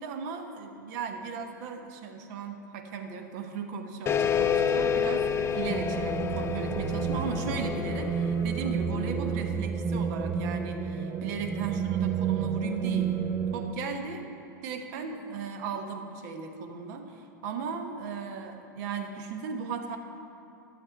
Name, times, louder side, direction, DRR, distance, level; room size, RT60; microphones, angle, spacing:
voice 1, 0.0-13.2 13.5-14.2 14.6-20.0, right 5 dB, 55° right, 5 dB, 1.1 m, -36 dB
sound 1, 4.1-9.1, left 7 dB, 25° left, 0.5 m, -29 dB
sound 2, 5.7-13.7, right 6 dB, 25° right, 0.6 m, -30 dB
12.0 x 7.1 x 4.6 m, 3.0 s
hypercardioid pair, 90°, 11 cm